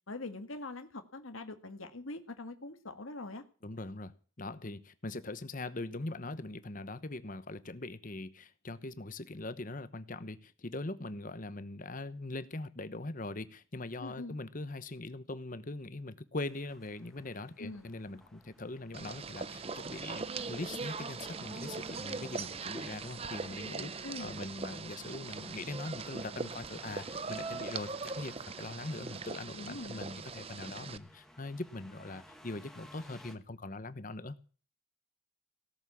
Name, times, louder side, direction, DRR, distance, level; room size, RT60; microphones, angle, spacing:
voice 1, 0.1-3.4 14.0-14.4 17.6-17.9 24.0-24.3 29.6-30.1, left 2 dB, 75° left, 7 dB, 1.8 m, -43 dB
voice 2, 3.6-34.4, left 2 dB, 40° left, 13 dB, 1.0 m, -42 dB
sound 1, 16.4-33.4, left 1 dB, ahead, 1.4 m, -59 dB
sound 2, 18.9-31.0, right 4 dB, 25° right, 0.6 m, -41 dB
17.5 x 7.3 x 8.5 m, 0.40 s
head